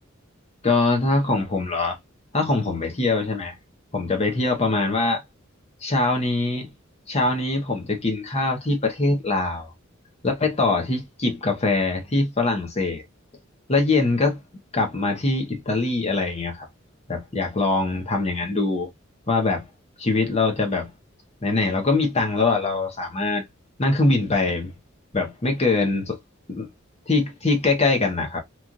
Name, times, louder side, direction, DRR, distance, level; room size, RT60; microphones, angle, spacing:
voice 1, 0.6-2.0 2.3-3.5 3.9-5.2 5.8-6.7 7.1-9.7 10.2-13.0 13.7-14.4 14.7-16.7 17.1-18.9 19.3-19.6 20.0-20.9 21.4-23.4 23.8-24.7 25.1-26.2 26.5-26.7 27.1-28.4, left 3 dB, 30° left, 1.0 m, -23 dB
3.1 x 2.6 x 2.4 m
head